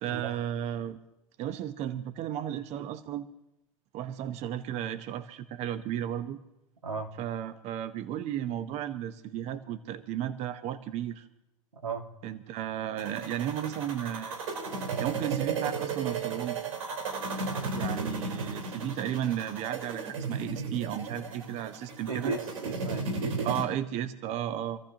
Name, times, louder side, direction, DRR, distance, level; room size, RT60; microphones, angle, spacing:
voice 1, 0.0-1.0 1.4-3.3 3.9-6.4 7.2-11.3 12.2-14.4 15.0-16.7 17.7-22.4 23.4-24.8, right 11 dB, 40° right, 11 dB, 1.0 m, -34 dB
sound 1, 13.0-23.6, right 4 dB, 70° right, 4.1 m, -35 dB
voice 2, 22.1-23.5, right 4 dB, 90° right, 2 dB, 2.1 m, -35 dB
27.0 x 14.5 x 2.9 m, 0.85 s
hypercardioid pair, 100°, 17 cm